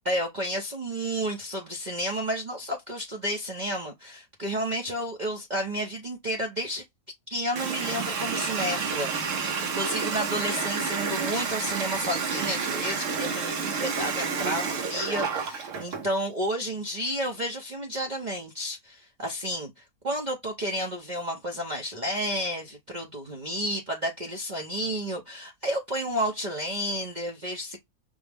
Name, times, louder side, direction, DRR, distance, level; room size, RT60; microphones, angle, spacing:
voice 1, 0.0-6.8 7.3-27.8, equal, 40° right, 0.6 m, -31 dB
Water tap faucet, 7.6-16.1, right 5 dB, 65° right, 1.1 m, -30 dB
5.3 x 2.0 x 3.3 m
omnidirectional pair, 1.6 m